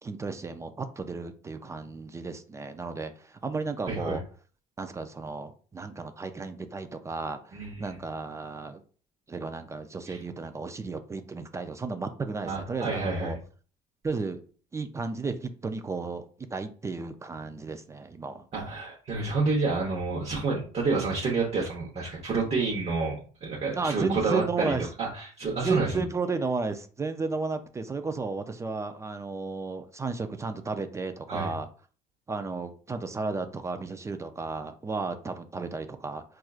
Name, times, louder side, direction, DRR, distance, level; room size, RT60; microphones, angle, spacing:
voice 1, 0.0-4.2 4.8-8.8 9.3-13.4 14.0-14.4 14.7-16.2 16.5-18.5 23.8-24.9 25.5-31.7 32.3-36.2, right 4 dB, 20° right, 8 dB, 0.3 m, -33 dB
voice 2, 3.8-4.2 7.5-7.9 10.1-10.2 12.5-13.4 18.5-26.0 31.3-31.5, right 3 dB, 40° right, -3 dB, 0.9 m, -29 dB
4.3 x 2.4 x 2.3 m, 0.41 s
cardioid pair, 120°, 16 cm